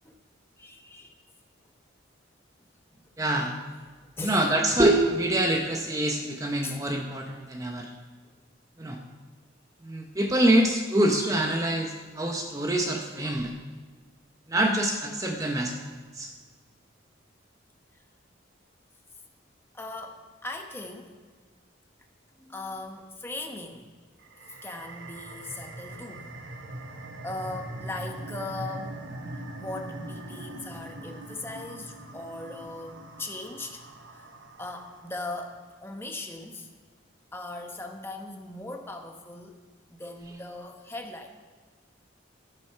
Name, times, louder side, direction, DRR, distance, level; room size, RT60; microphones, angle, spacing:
voice 1, 0.6-1.1 2.9-3.0 4.2-4.4 4.7-4.8 6.6-6.8 19.7-21.1 22.4-23.9 24.5-26.2 27.2-29.0 29.5-33.8 34.1-34.3 34.6-36.7 37.3-39.6 39.9-41.3, left 2 dB, 10° left, 3 dB, 1.1 m, -39 dB
voice 2, 3.2-3.5 4.2-7.9 8.8-9.0 9.8-13.5 14.5-15.7 16.1-16.3, right 1 dB, 15° right, 2 dB, 0.8 m, -25 dB
sound 1, 24.2-35.4, right 1 dB, 70° right, 1.2 m, -42 dB
13.5 x 9.0 x 5.7 m, 1.5 s
head